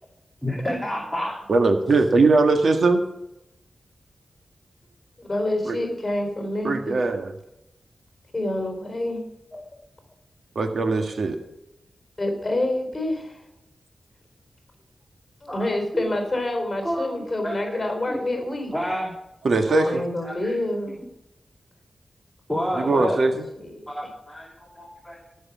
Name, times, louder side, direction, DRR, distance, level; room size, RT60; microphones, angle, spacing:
voice 1, 0.4-1.3 9.5-9.6 15.5-15.7 15.9-16.0 16.8-17.8 18.1-18.2 18.7-19.1 19.6-19.9 20.2-20.6 22.5-23.2 23.9-25.2, equal, 5° left, -3 dB, 2.8 m, -30 dB
voice 2, 1.5-3.0 5.6-5.8 6.6-7.3 10.5-11.4 19.4-19.8 22.8-23.3, right 3 dB, 70° right, 5 dB, 1.7 m, -20 dB
voice 3, 5.2-7.0 8.3-9.2 12.2-13.4 15.4-19.0 19.8-21.0 22.5-23.9, left 1 dB, 25° left, 3 dB, 4.1 m, -28 dB
17.5 x 6.5 x 6.2 m, 0.85 s
wide cardioid pair, 95°, 0 cm